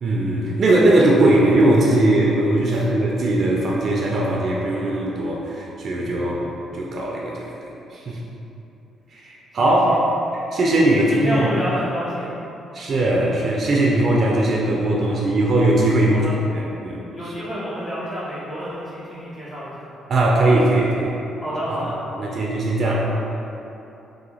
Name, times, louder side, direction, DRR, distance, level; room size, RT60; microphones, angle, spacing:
voice 1, 0.0-8.2 9.1-10.0 10.5-11.5 12.7-16.2 16.5-17.0 20.1-21.1 21.7-21.9 22.2-23.1, right 1 dB, 55° right, -2 dB, 0.4 m, -19 dB
voice 2, 6.2-6.5 9.6-10.0 11.0-12.3 15.0-15.2 16.1-16.3 17.1-19.9 21.4-22.0, equal, 25° left, -9 dB, 1.1 m, -29 dB
2.8 x 2.7 x 4.0 m, 2.9 s
cardioid pair, 90°, 0 cm